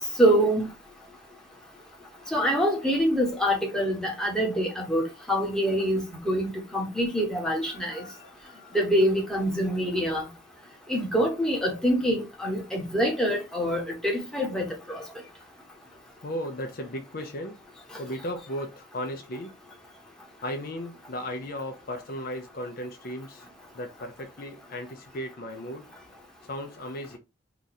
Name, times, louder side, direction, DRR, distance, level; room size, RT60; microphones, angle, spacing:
voice 1, 0.2-0.7 2.3-7.9 8.7-10.2 10.9-14.7, equal, 5° left, 1.0 m, -25 dB
voice 2, 7.3-8.9 16.2-17.6 18.0-19.5 20.4-23.4 23.7-25.9 26.5-27.2, equal, 50° left, 0.5 m, -36 dB
2.9 x 2.5 x 4.1 m
head